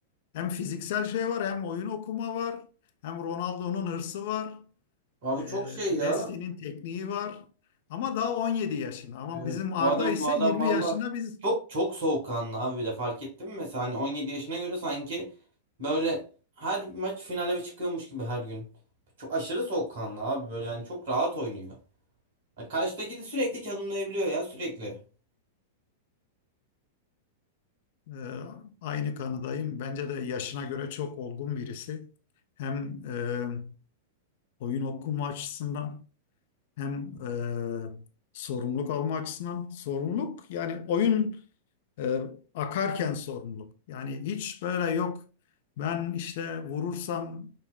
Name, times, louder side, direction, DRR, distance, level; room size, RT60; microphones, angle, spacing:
voice 1, 0.3-2.7 3.0-4.6 5.4-7.5 7.9-11.4 28.1-32.1 32.6-33.7 34.6-36.0 36.8-38.0 38.3-41.4 42.0-45.2 45.8-47.5, left 7 dB, 55° left, 0.4 m, -32 dB
voice 2, 5.2-6.3 9.3-10.9 11.4-15.3 15.8-16.2 16.6-18.7 19.2-21.8 22.6-25.0, right 1 dB, 60° right, 1.8 m, -30 dB
5.2 x 2.1 x 2.2 m
figure-of-eight pair, 95°, 0 cm